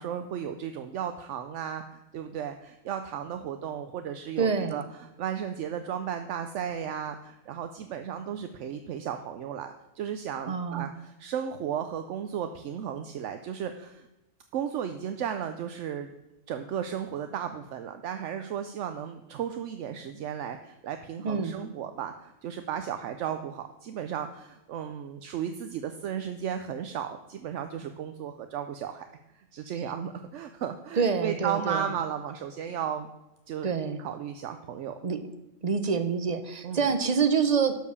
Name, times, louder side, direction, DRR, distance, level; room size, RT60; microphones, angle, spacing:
voice 1, 0.0-14.1 14.5-16.1 16.5-29.1 29.3-33.1 33.5-33.7 34.0-35.0 36.6-36.9, right 8 dB, 75° right, 8 dB, 0.9 m, -34 dB
voice 2, 4.4-4.8 10.5-10.9 21.2-21.6 31.0-31.9 33.6-34.0 35.0-35.3 35.6-37.7, right 5 dB, 40° right, 9 dB, 0.8 m, -26 dB
12.0 x 4.7 x 6.9 m, 0.96 s
omnidirectional pair, 1.3 m